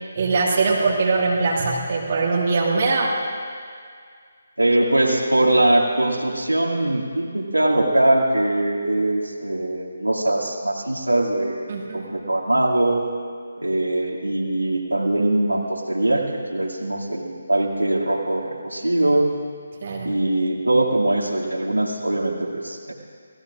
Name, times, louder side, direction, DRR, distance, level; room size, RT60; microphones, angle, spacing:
voice 1, 0.2-3.2 11.7-12.1 19.8-20.1, right 3 dB, 40° right, -2 dB, 1.8 m, -21 dB
voice 2, 4.6-13.1 13.6-19.3 20.0-22.9, right 1 dB, 80° right, -2 dB, 2.4 m, -22 dB
29.5 x 17.5 x 2.5 m, 2.1 s
figure-of-eight pair, 145°, 0 cm